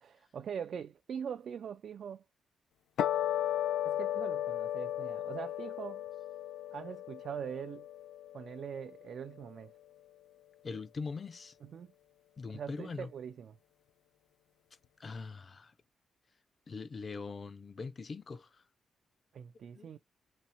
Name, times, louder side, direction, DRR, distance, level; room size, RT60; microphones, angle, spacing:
voice 1, 0.0-2.2 3.8-6.0 6.7-7.9 8.3-9.7 11.6-11.9 12.5-13.6 19.3-20.0, right 7 dB, 55° right, 0.3 m, -42 dB
sound 1, 3.0-9.5, left 12 dB, 85° left, 0.6 m, -35 dB
voice 2, 10.6-11.6 12.4-13.1 15.0-15.7 16.7-18.6 19.7-19.9, left 4 dB, 30° left, 0.4 m, -42 dB
4.1 x 2.8 x 4.3 m
wide cardioid pair, 165°, 0 cm